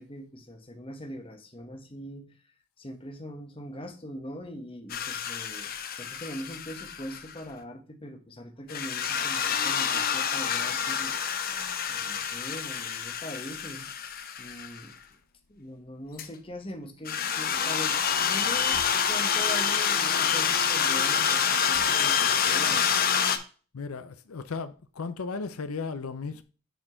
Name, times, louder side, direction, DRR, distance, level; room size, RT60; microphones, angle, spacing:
voice 1, 0.0-2.3 2.8-5.7 6.0-13.9 14.4-15.0 15.5-23.0, equal, 25° left, 1.1 m, -42 dB
sound 1, 4.9-7.4 8.7-14.8 16.2-16.3 17.1-23.4, left 7 dB, 45° left, 0.7 m, -27 dB
voice 2, 23.7-26.4, left 4 dB, 85° left, 0.6 m, -35 dB
6.9 x 4.4 x 4.4 m
head